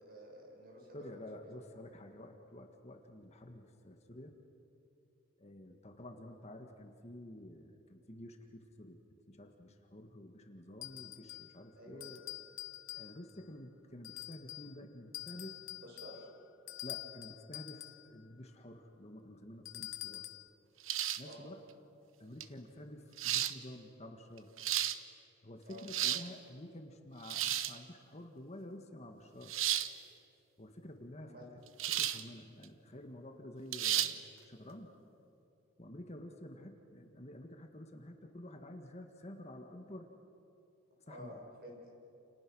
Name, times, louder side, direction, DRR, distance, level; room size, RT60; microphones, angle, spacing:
voice 1, 0.0-1.1 11.8-12.2 15.8-16.3 21.2-21.5 25.7-25.8 31.2-31.5 41.1-41.8, equal, 50° right, 0 dB, 6.4 m, -51 dB
voice 2, 0.9-4.4 5.4-9.0 9.3-12.2 12.9-15.6 16.8-20.3 21.2-21.6 22.2-24.5 25.4-29.5 30.6-31.6 32.0-34.9 35.8-40.1 41.1-41.4, left 1 dB, 30° left, 4 dB, 1.7 m, -50 dB
sound 1, 10.8-11.6 12.0-13.4 14.0-14.7 15.1-18.1 19.6-20.5, left 15 dB, 80° left, 1.0 m, -46 dB
sound 2, 20.9-21.3 22.4-22.5 23.2-23.5 24.4-25.0 25.7-26.3 27.2-27.8 29.5-29.9 31.8-32.2 32.6-32.7 33.7-34.1, right 12 dB, 75° right, 1.0 m, -33 dB
29.5 x 29.5 x 6.3 m, 2.9 s
head